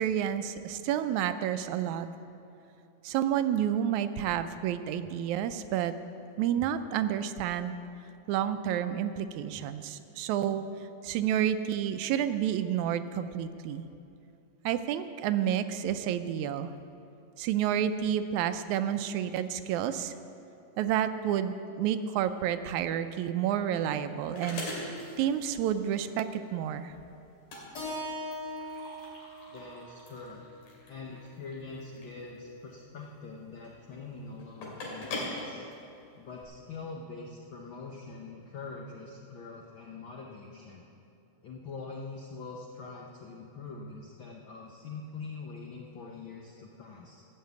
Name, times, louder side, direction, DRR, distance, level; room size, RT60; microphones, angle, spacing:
voice 1, 0.0-2.1 3.0-5.9 6.4-7.8 8.3-10.6 11.0-13.9 14.7-16.7 17.4-20.1 20.8-24.6 25.2-26.9, right 10 dB, 80° right, 10 dB, 1.9 m, -30 dB
sound 1, 23.1-36.4, left 2 dB, 90° left, 3.9 m, -43 dB
Keyboard (musical), 27.7-32.0, equal, 35° left, 2.5 m, -42 dB
voice 2, 29.5-30.4 30.9-35.6 36.1-40.8 41.4-47.3, left 4 dB, 75° left, -1 dB, 1.1 m, -44 dB
14.5 x 6.5 x 8.1 m, 2.7 s
omnidirectional pair, 3.4 m